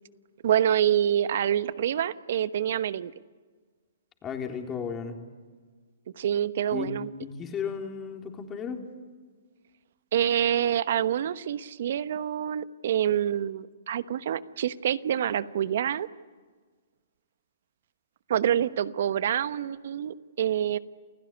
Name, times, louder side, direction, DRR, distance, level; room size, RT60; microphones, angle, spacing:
voice 1, 0.4-3.1 6.1-7.1 10.1-16.1 18.3-20.8, right 10 dB, 60° right, 15 dB, 1.1 m, -26 dB
voice 2, 4.2-5.2 6.7-6.9 7.2-8.8, left 7 dB, 20° left, 3 dB, 3.8 m, -34 dB
29.0 x 16.5 x 9.9 m, 1.5 s
hypercardioid pair, 130°, 0 cm